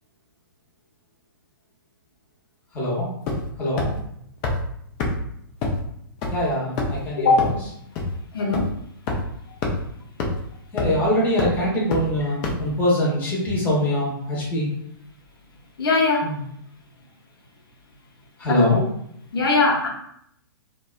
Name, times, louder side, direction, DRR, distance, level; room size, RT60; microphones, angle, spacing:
voice 1, 2.7-3.1 3.6-3.9 6.3-7.5 10.7-14.7 16.2-16.4 18.4-18.8, left 1 dB, 15° left, -5 dB, 0.9 m, -23 dB
sound 1, 3.3-3.5 3.8-3.9 4.4-4.5 5.0-5.1 5.6-5.7 6.2-6.3 6.8-7.0 7.4-7.5 8.0-8.1 8.5-8.6 9.1-9.2 9.6-9.7 10.2-10.3 10.8-11.0 11.4-11.5 11.9-12.0 12.4-12.5, left 3 dB, 30° left, 0.5 m, -24 dB
voice 2, 7.2-7.5 8.3-8.7 15.8-16.3 18.5-18.8 19.3-19.9, left 3 dB, 80° left, -1 dB, 0.7 m, -20 dB
2.6 x 2.2 x 2.3 m, 0.71 s
hypercardioid pair, 140°, 12 cm